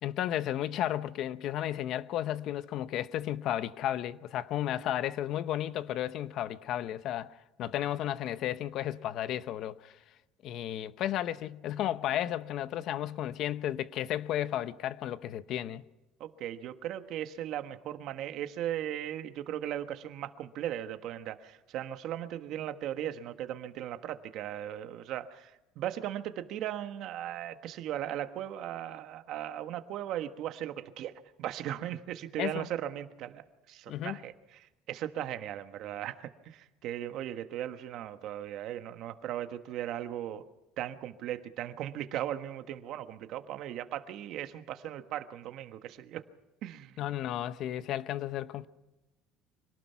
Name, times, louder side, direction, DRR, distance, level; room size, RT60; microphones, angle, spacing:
voice 1, 0.0-10.0 10.4-15.8 32.4-32.7 33.9-34.2 47.0-48.7, left 12 dB, 50° left, 0.8 m, -33 dB
voice 2, 16.2-31.1 31.4-40.5 40.8-46.2 46.6-47.0, right 11 dB, 55° right, 1.4 m, -37 dB
25.5 x 18.5 x 5.8 m
cardioid pair, 155°, 0 cm